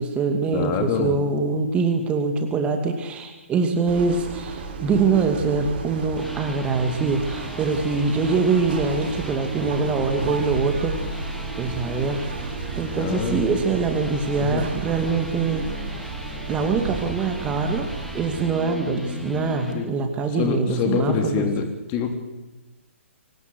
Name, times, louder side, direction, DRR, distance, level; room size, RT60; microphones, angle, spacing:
voice 1, 0.0-12.3 12.8-15.9 16.5-17.9 18.1-21.5, right 4 dB, 15° right, 5 dB, 2.2 m, -24 dB
voice 2, 0.5-1.1 13.0-13.4 14.4-14.6 19.7-19.8 20.4-22.1, left 7 dB, 25° left, 5 dB, 3.3 m, -25 dB
sound 1, 3.9-18.5, right 4 dB, 45° right, 6.3 m, -33 dB
sound 2, 6.0-19.8, equal, ahead, 3.1 m, -38 dB
24.5 x 18.5 x 8.1 m, 1.1 s
figure-of-eight pair, 130°, 7 cm